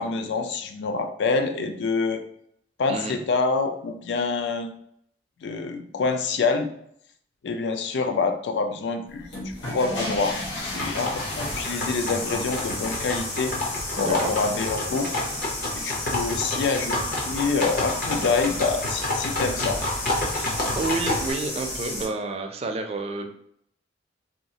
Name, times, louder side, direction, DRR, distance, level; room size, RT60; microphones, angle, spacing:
voice 1, 0.0-2.2 2.8-4.7 5.4-6.7 7.4-9.3 9.7-13.6 13.9-15.1 15.8-19.8, left 4 dB, 70° left, 6 dB, 0.4 m, -26 dB
sound 1, 9.2-22.0, left 1 dB, 90° left, 0.9 m, -33 dB
sound 2, 10.6-21.3, left 2 dB, 50° left, 0.7 m, -30 dB
voice 2, 14.0-14.3 20.4-23.3, right 3 dB, 35° right, 4 dB, 0.4 m, -30 dB
3.0 x 2.3 x 2.7 m, 0.71 s
head